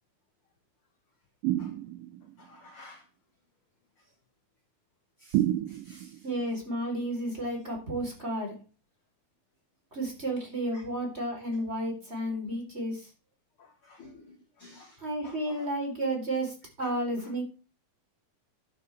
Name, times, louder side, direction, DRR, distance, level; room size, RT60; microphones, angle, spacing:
sound 1, 1.4-2.3 5.3-6.2, right 14 dB, 90° right, 2.3 m, -29 dB
voice 1, 2.4-3.0 5.2-5.4 5.7-6.3 10.7-10.8 13.6-15.7 16.8-16.9, left 2 dB, 55° left, 5 dB, 1.7 m, -52 dB
voice 2, 6.2-8.6 9.9-13.1 15.0-17.4, right 1 dB, 20° right, 0 dB, 3.9 m, -32 dB
11.5 x 11.0 x 3.5 m, 0.33 s
omnidirectional pair, 3.8 m